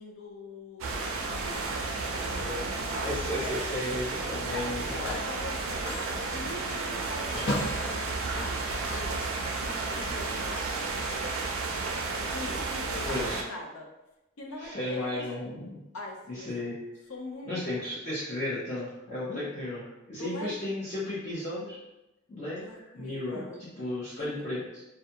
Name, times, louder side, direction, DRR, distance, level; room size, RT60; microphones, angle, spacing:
voice 1, 0.0-1.7 2.2-3.8 4.3-9.1 9.6-11.4 12.3-13.9 14.4-15.2 15.9-16.5 17.1-17.9 20.2-20.5 22.6-23.6 24.2-24.3, left 2 dB, 90° left, 1 dB, 0.5 m, -43 dB
sound 1, 0.8-13.4, right 3 dB, 80° right, 0.4 m, -32 dB
Telephone, 2.2-2.5 4.4-9.3 9.6-11.1, equal, 70° left, 0.9 m, -38 dB
voice 2, 2.4-2.7 3.0-5.2 13.0-13.4 14.6-15.8 16.3-16.8 17.4-21.8 22.3-23.4 23.8-24.8, left 1 dB, 35° left, -10 dB, 0.6 m, -34 dB
2.4 x 2.2 x 2.7 m, 0.95 s
head